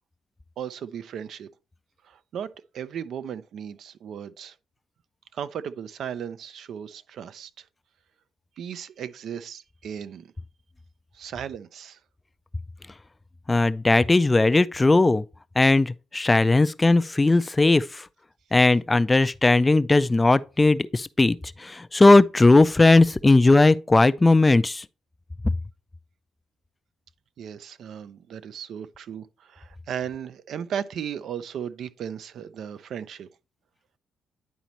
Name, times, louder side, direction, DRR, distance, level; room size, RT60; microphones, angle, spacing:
voice 1, 0.6-1.5 2.1-4.5 5.3-7.6 8.6-10.3 11.1-12.0 27.4-33.3, right 8 dB, 70° right, 0.5 m, -36 dB
voice 2, 13.5-15.2 15.6-18.1 18.5-24.8, left 2 dB, 20° left, 0.3 m, -18 dB
10.5 x 4.1 x 3.0 m
cardioid pair, 90°, 0 cm